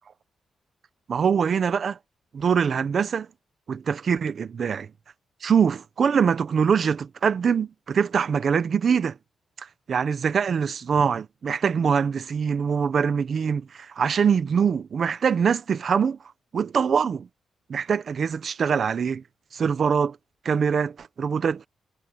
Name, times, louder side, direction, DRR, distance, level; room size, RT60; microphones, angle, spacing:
voice 1, 1.1-2.0 2.3-3.3 3.7-4.9 5.4-9.2 9.6-16.2 16.5-17.3 17.7-19.2 19.5-20.2 20.4-21.7, right 6 dB, 50° right, 1.0 m, -23 dB
cardioid pair, 120°, 0 cm